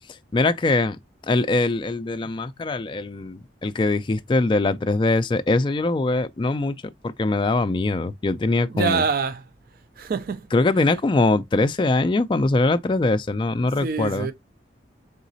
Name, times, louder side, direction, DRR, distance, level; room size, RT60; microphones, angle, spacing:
voice 1, 0.3-1.0 1.3-9.0 10.5-14.3, left 2 dB, 25° left, 0.3 m, -22 dB
voice 2, 8.7-9.4 10.0-10.5 13.8-14.3, right 5 dB, 50° right, 0.4 m, -25 dB
4.0 x 3.7 x 2.7 m
head